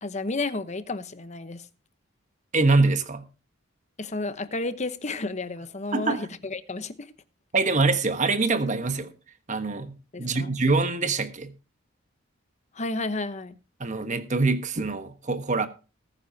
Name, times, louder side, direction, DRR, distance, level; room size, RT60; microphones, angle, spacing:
voice 1, 0.0-1.7 4.0-7.1 10.1-10.5 12.7-13.5, left 2 dB, 35° left, 1.0 m, -32 dB
voice 2, 2.5-3.2 5.9-6.2 7.5-9.1 9.5-11.5 13.8-15.7, right 3 dB, 40° right, 1.3 m, -24 dB
19.5 x 9.7 x 2.8 m
head